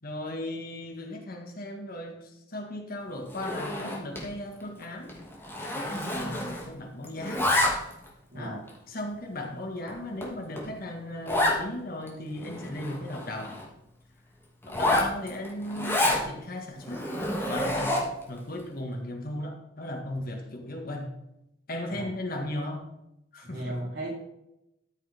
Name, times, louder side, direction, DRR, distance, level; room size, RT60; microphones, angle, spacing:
voice 1, 0.0-5.1 5.7-7.5 8.3-13.6 14.7-17.0 17.5-18.0 18.3-21.1 21.7-22.9 23.3-23.9, left 1 dB, 50° left, 3 dB, 1.8 m, -36 dB
Zipper (clothing), 3.3-4.3 4.6-4.8 5.1-6.8 7.0-8.1 8.7-8.8 9.4-9.5 9.9-10.0 10.2-10.3 10.6-10.7 11.3-11.6 12.1-12.2 12.4-13.7 14.6-16.2 16.8-18.2, left 1 dB, 10° left, 2.2 m, -28 dB
voice 2, 23.4-24.2, right 1 dB, 60° right, -4 dB, 4.0 m, -35 dB
13.0 x 6.7 x 3.6 m, 0.85 s
head